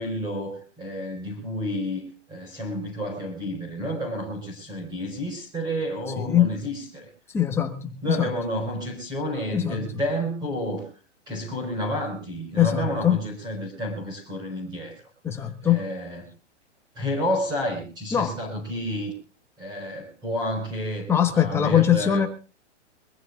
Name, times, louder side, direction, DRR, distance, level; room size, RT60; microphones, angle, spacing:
voice 1, 0.0-7.1 8.0-10.9 11.3-15.0 15.4-16.2 17.0-19.1 19.6-22.3, equal, 10° right, 5.1 m, -30 dB
voice 2, 6.2-6.5 7.3-8.3 9.5-9.9 12.6-13.2 15.2-15.9 18.1-18.4 21.1-22.3, left 10 dB, 5° left, 1.3 m, -22 dB
24.0 x 15.5 x 2.4 m
hypercardioid pair, 165°, 36 cm